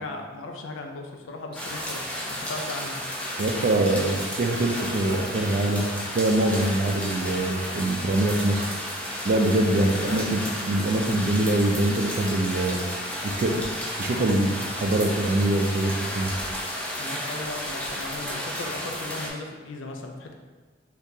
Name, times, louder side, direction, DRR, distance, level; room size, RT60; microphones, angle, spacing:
voice 1, 0.0-3.0 9.8-10.2 17.0-20.3, left 2 dB, 80° left, 3 dB, 0.4 m, -37 dB
sound 1, 1.5-19.3, equal, 5° left, 0.6 m, -32 dB
voice 2, 3.4-5.9 6.1-8.7 9.2-10.4 10.7-12.8 13.2-13.6 14.0-16.3, right 1 dB, 50° right, 3 dB, 0.4 m, -24 dB
3.6 x 2.8 x 2.7 m, 1.4 s
head